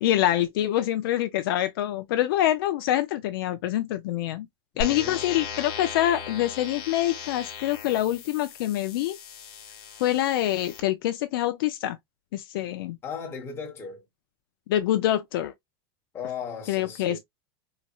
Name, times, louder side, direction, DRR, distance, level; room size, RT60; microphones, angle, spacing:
voice 1, 0.0-4.5 4.8-9.2 10.0-12.0 12.3-13.0 14.7-15.5 16.7-17.2, left 13 dB, 65° left, 0.5 m, -25 dB
voice 2, 4.7-5.6 13.0-14.1 16.1-17.2, left 6 dB, 20° left, 1.1 m, -37 dB
sound 1, 4.8-10.8, left 6 dB, 45° left, 1.0 m, -38 dB
4.1 x 2.0 x 2.3 m
supercardioid pair, 155°, 13 cm